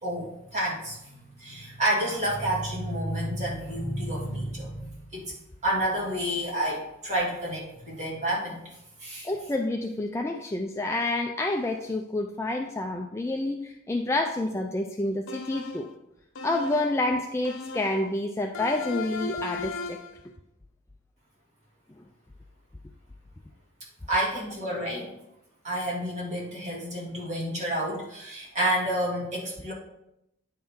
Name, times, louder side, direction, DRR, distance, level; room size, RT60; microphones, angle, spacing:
voice 1, 0.0-5.3 5.6-8.6 9.0-9.3 24.1-25.1 25.6-29.7, right 1 dB, 35° right, -5 dB, 2.1 m, -29 dB
voice 2, 9.2-15.9 16.4-20.0 22.0-22.1, left 2 dB, 15° left, 2 dB, 0.3 m, -28 dB
sound 1, 15.3-15.9 16.3-17.0 17.4-18.1 18.5-20.2, left 3 dB, 75° left, 0.7 m, -36 dB
9.4 x 4.4 x 3.6 m, 0.83 s
head